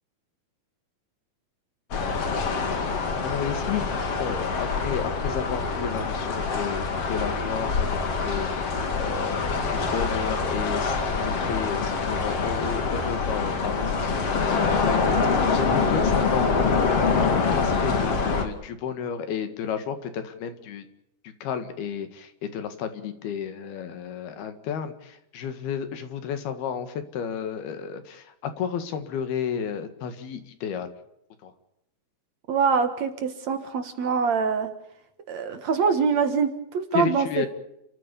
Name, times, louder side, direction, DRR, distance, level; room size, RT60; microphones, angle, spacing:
sound 1, 1.9-18.5, left 4 dB, 45° left, 3.0 m, -25 dB
voice 1, 3.2-3.9 4.2-8.7 9.0-15.2 15.5-20.8 21.2-30.9 31.4-31.5 37.0-37.5, left 7 dB, 85° left, 9 dB, 3.8 m, -32 dB
voice 2, 32.5-34.7 35.3-37.5, right 5 dB, 55° right, 8 dB, 2.3 m, -24 dB
30.0 x 14.0 x 7.1 m, 0.81 s
omnidirectional pair, 4.3 m